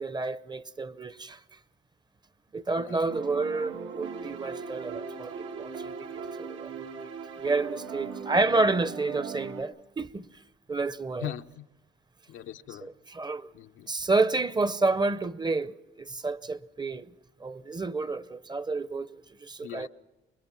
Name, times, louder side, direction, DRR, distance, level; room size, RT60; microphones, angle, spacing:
voice 1, 0.0-1.4 2.5-7.1 7.4-10.3 10.7-11.3 12.8-13.5 13.9-17.1 17.4-19.1 19.4-19.9, right 3 dB, 20° right, 0.7 m, -30 dB
sound 1, 3.1-9.6, right 6 dB, 90° right, 1.8 m, -39 dB
voice 2, 11.2-11.7 12.3-12.9 13.5-13.9 19.6-19.9, left 12 dB, 90° left, 0.8 m, -39 dB
25.5 x 21.5 x 6.0 m
cardioid pair, 90°, 20 cm